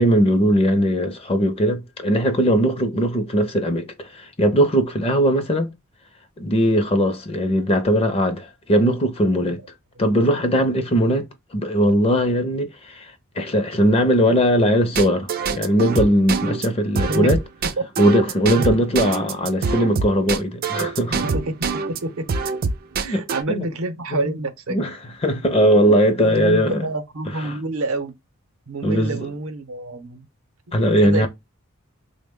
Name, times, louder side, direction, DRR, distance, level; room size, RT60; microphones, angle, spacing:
voice 1, 0.0-5.7 6.4-9.6 10.0-11.3 11.5-17.4 18.0-21.3 23.0-23.2 23.5-23.7 24.1-24.3 24.7-24.9 25.2-26.9 28.8-29.3 30.7-31.3, equal, 25° left, 0.5 m, -19 dB
sound 1, 14.9-22.0 22.3-23.4, right 4 dB, 40° right, 0.3 m, -24 dB
voice 2, 23.0-24.8 26.2-28.1 28.7-30.3 31.0-31.3, right 2 dB, 75° right, 0.7 m, -28 dB
3.5 x 2.1 x 3.5 m
head